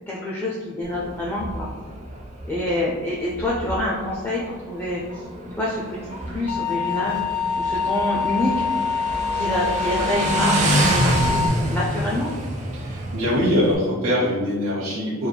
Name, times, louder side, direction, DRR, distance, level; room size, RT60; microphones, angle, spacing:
voice 1, 0.1-1.7 2.4-5.2 5.5-7.2 7.6-8.7 9.3-11.4 11.7-12.3, left 1 dB, 10° left, -5 dB, 0.5 m, -26 dB
Motorcycle, 0.8-13.7, right 1 dB, 35° right, 0.7 m, -27 dB
sound 1, 6.5-11.5, left 5 dB, 70° left, 0.4 m, -25 dB
voice 2, 12.7-15.3, equal, 90° right, -7 dB, 0.8 m, -23 dB
4.4 x 3.4 x 2.2 m, 1.5 s
head